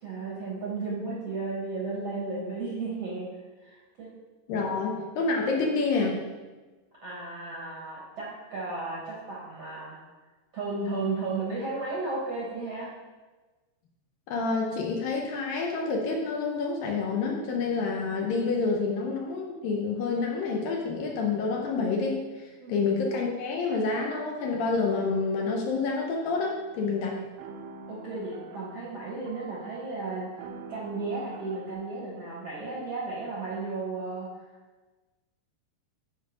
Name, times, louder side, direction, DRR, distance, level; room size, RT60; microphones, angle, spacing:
voice 1, 0.0-3.3 3.6-4.1 4.7-4.8 7.0-10.0 10.5-12.9 22.6-22.7 27.9-30.3 30.7-34.4, right 3 dB, 60° right, -5 dB, 1.6 m, -34 dB
voice 2, 4.5-6.2 14.3-27.2, left 4 dB, 75° left, 0 dB, 2.3 m, -28 dB
sound 1, 26.3-31.7, right 3 dB, 80° right, 2.3 m, -46 dB
10.5 x 4.0 x 5.1 m, 1.3 s
omnidirectional pair, 4.5 m